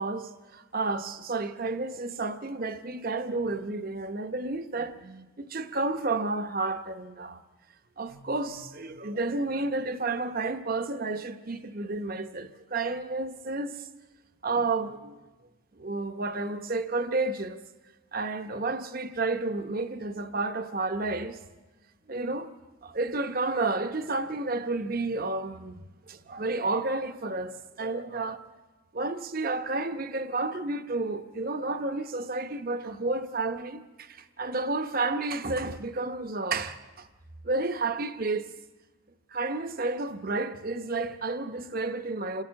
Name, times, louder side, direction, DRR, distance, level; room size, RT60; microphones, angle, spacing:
voice 1, 0.0-7.4 8.0-13.8 14.4-15.2 15.8-17.6 18.1-21.4 22.1-22.5 22.8-25.8 26.1-28.4 28.9-37.1 37.4-38.5 39.3-42.4, right 3 dB, 40° right, 0.9 m, -31 dB
27.5 x 13.0 x 7.6 m
head